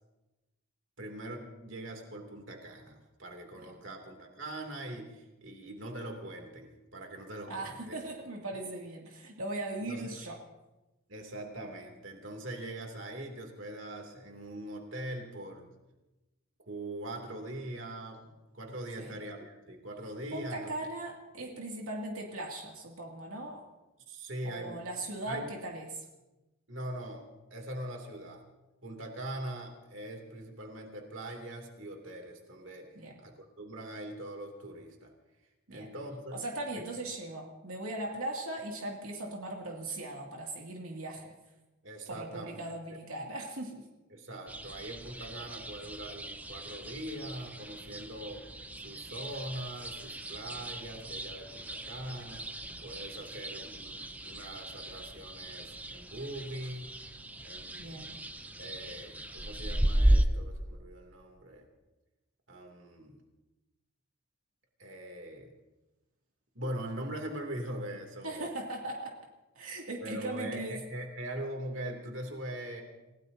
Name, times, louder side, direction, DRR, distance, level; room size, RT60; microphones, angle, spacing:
voice 1, 1.0-8.0 9.9-10.2 11.1-15.7 16.7-20.6 24.1-24.8 25.3-25.5 26.7-27.2 27.5-28.4 28.8-32.9 33.2-35.1 35.7-36.4 41.8-42.7 44.1-48.4 48.8-52.4 52.8-56.9 57.4-58.1 58.6-61.7 62.5-63.2 64.8-65.5 66.5-68.5 70.0-72.8, right 1 dB, 65° right, 2 dB, 2.8 m, -42 dB
voice 2, 7.5-10.4 19.0-19.2 20.3-23.6 24.4-26.0 33.0-33.1 35.7-35.9 36.4-41.3 42.1-43.9 57.8-58.2 68.2-69.2 69.6-70.8, right 2 dB, 85° right, 0 dB, 2.5 m, -39 dB
sound 1, 44.5-60.3, right 1 dB, 10° right, 0.6 m, -35 dB
29.5 x 17.5 x 2.8 m, 1.1 s
head